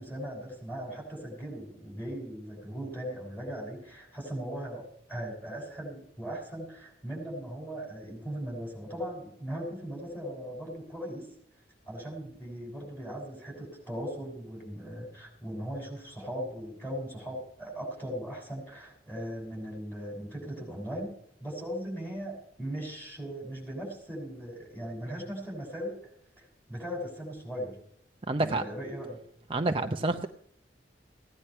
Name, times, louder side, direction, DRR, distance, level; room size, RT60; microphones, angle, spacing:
voice 1, 0.0-11.3 11.9-21.1 21.4-26.0 26.4-27.8 28.4-29.2, equal, 10° left, 0 dB, 6.7 m, -38 dB
voice 2, 28.3-28.6 29.5-30.3, right 2 dB, 30° right, 5 dB, 0.7 m, -28 dB
17.0 x 10.5 x 5.7 m, 0.68 s
head